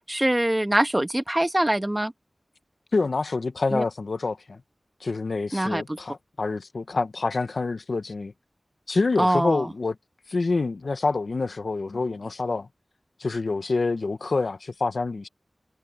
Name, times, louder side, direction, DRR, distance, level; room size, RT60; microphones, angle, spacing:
voice 1, 0.1-2.1 3.7-3.8 5.5-6.0 9.2-9.7, right 1 dB, 20° right, 1.6 m, -23 dB
voice 2, 2.9-4.6 5.0-8.3 8.9-9.9 10.3-12.7 13.2-15.3, left 3 dB, 80° left, 1.1 m, -27 dB
wide cardioid pair, 60°, 0 cm